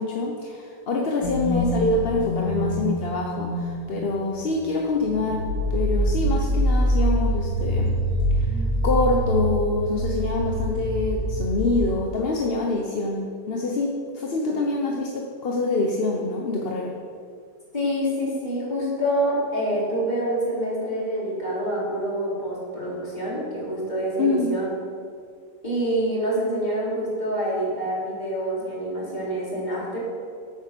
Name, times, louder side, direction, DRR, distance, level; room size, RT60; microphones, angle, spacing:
voice 1, 0.0-5.4 5.7-7.9 8.4-8.5 8.8-16.9 24.2-24.5, left 3 dB, 40° left, -1 dB, 1.0 m, -25 dB
sound 1, 1.2-3.9 4.3-4.7 5.0-11.5, equal, 75° left, 2.5 m, -25 dB
voice 2, 17.7-24.7 25.6-30.0, right 1 dB, 25° left, -6 dB, 3.8 m, -26 dB
10.5 x 8.8 x 6.7 m, 2.2 s
omnidirectional pair, 1.9 m